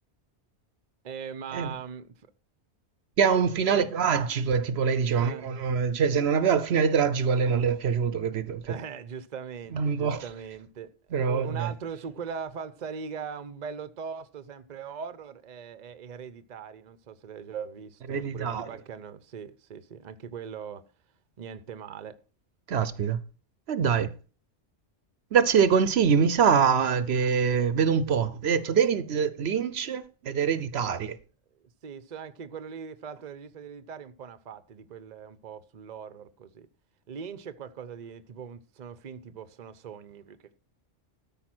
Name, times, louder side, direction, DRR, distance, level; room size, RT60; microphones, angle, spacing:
voice 1, 1.0-2.3 3.6-3.9 5.1-5.5 8.7-10.9 11.2-20.8 21.4-22.2 31.6-36.7 37.1-40.4, right 6 dB, 45° right, 0.8 m, -40 dB
voice 2, 3.2-8.7 9.7-10.2 11.1-11.7 18.1-18.7 22.7-23.2 23.7-24.1 25.3-31.2, right 6 dB, 70° right, 0.9 m, -24 dB
13.0 x 5.5 x 6.0 m
omnidirectional pair, 1.2 m